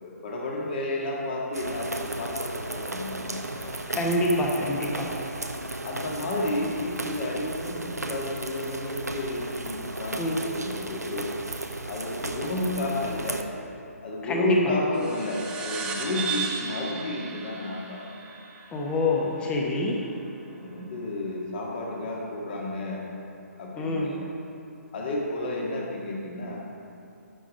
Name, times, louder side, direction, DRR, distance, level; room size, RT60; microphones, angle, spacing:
voice 1, 0.0-3.7 5.8-11.3 11.9-13.4 14.0-18.0 20.5-23.0 23.6-24.2 24.9-26.7, left 2 dB, 40° left, -2 dB, 1.8 m, -31 dB
sound 1, 1.5-13.4, right 2 dB, 85° right, 0.7 m, -35 dB
voice 2, 3.9-5.1 10.2-10.4 14.2-14.6 18.7-20.0 23.8-24.1, left 1 dB, 10° left, -1 dB, 1.0 m, -26 dB
sound 2, 14.9-19.9, right 6 dB, 10° right, 0.6 m, -35 dB
9.9 x 6.2 x 5.2 m, 2.7 s
figure-of-eight pair, 135°, 9 cm